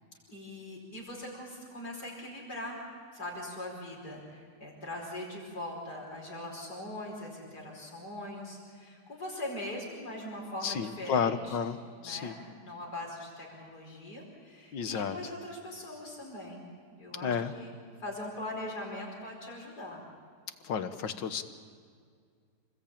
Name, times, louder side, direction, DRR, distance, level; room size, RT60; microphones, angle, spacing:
voice 1, 0.3-2.8 3.1-11.6 12.0-16.6 17.0-20.0, left 1 dB, 60° left, -2 dB, 5.6 m, -41 dB
voice 2, 10.6-11.8 12.0-12.4 14.7-15.2 17.2-17.5 20.6-21.4, left 7 dB, 90° left, 9 dB, 2.0 m, -31 dB
28.5 x 20.5 x 8.7 m, 2.1 s
omnidirectional pair, 1.9 m